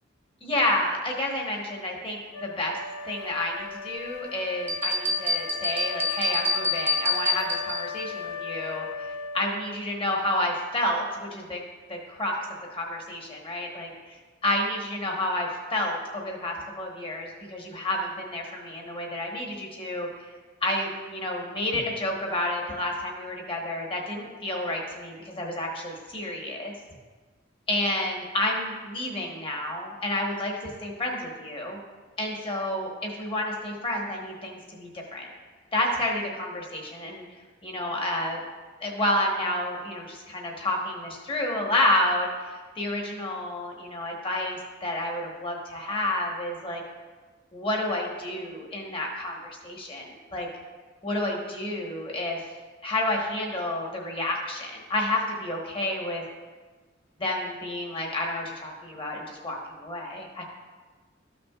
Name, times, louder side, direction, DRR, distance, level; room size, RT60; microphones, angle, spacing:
voice 1, 0.4-2.8 3.0-11.6 11.9-12.3 12.7-14.2 14.4-20.3 20.6-26.7 27.7-31.8 32.2-35.3 35.7-37.2 37.6-38.4 38.8-46.8 47.5-50.5 51.0-52.5 52.8-56.2 57.2-60.4, left 1 dB, 30° left, 0 dB, 1.3 m, -30 dB
Wind instrument woodwind instrument, 2.3-9.9, left 6 dB, 80° left, 0.5 m, -37 dB
sound 1, 4.7-8.0, left 2 dB, 10° right, 0.7 m, -27 dB
13.5 x 6.0 x 2.5 m, 1.4 s
head